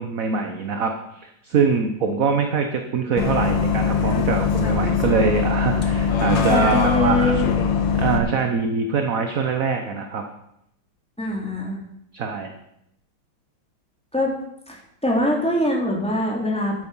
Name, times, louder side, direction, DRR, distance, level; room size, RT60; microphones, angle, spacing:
voice 1, 0.0-7.3 7.9-10.2 12.1-12.5, right 5 dB, 50° right, 5 dB, 1.2 m, -23 dB
Bus, 3.2-8.2, left 6 dB, 60° left, 2.0 m, -21 dB
voice 2, 6.5-7.5 11.2-11.8 14.1-14.3 14.7-16.7, left 1 dB, 5° left, -2 dB, 2.9 m, -23 dB
12.5 x 9.8 x 5.6 m, 0.79 s
omnidirectional pair, 2.3 m